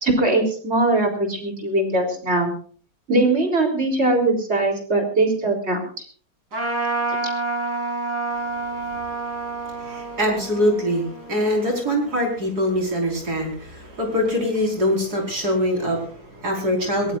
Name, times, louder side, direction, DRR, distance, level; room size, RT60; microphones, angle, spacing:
voice 1, 0.0-2.5 3.1-5.8, right 2 dB, 40° right, 3 dB, 4.1 m, -21 dB
Trumpet, 6.5-12.3, right 3 dB, 90° right, 4.9 m, -29 dB
voice 2, 8.4-9.2 9.5-17.2, equal, 75° right, 1 dB, 5.6 m, -24 dB
22.0 x 18.5 x 2.6 m, 0.44 s
omnidirectional pair, 1.7 m